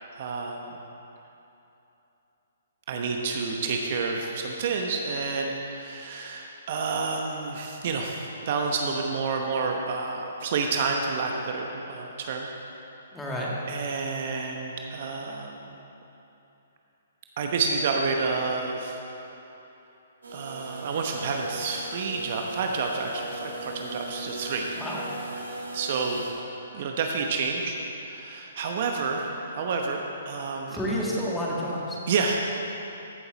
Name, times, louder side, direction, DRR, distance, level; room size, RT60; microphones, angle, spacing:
voice 1, 0.1-0.7 2.9-12.5 13.7-15.7 17.4-19.0 20.3-24.7 25.7-26.2 26.7-27.8 28.0-30.8 32.1-32.4, right 4 dB, 50° right, 2 dB, 1.0 m, -29 dB
voice 2, 13.1-13.5 24.8-25.0 30.7-32.0, equal, 5° left, -5 dB, 1.9 m, -29 dB
sound 1, 20.2-26.3, right 2 dB, 80° right, 2.1 m, -39 dB
15.0 x 6.9 x 4.1 m, 2.9 s
hypercardioid pair, 135°, 0 cm